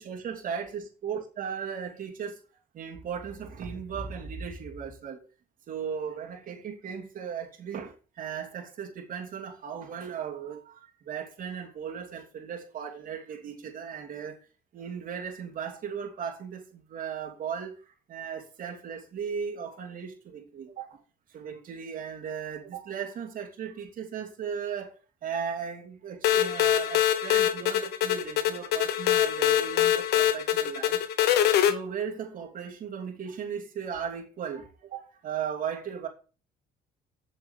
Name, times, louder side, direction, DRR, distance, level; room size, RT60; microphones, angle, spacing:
voice 1, 0.0-2.4 2.7-5.2 5.7-14.4 14.7-17.7 18.1-21.0 21.3-24.9 25.2-31.0 31.7-36.1, right 7 dB, 55° right, 2.8 m, -36 dB
sound 1, 26.2-31.7, left 11 dB, 75° left, 1.2 m, -24 dB
7.7 x 7.0 x 6.7 m
cardioid pair, 110°, 17 cm